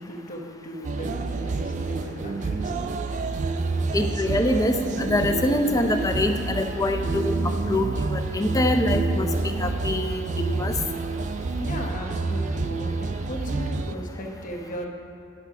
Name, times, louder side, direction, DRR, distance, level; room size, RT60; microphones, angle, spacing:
voice 1, 0.0-2.9 11.6-14.9, equal, 40° left, 0 dB, 1.1 m, -37 dB
sound 1, 0.8-14.0, right 3 dB, 40° right, 0.3 m, -28 dB
voice 2, 3.9-7.3 7.7-10.7, left 1 dB, 15° left, 6 dB, 0.5 m, -25 dB
10.5 x 5.8 x 5.8 m, 2.7 s
head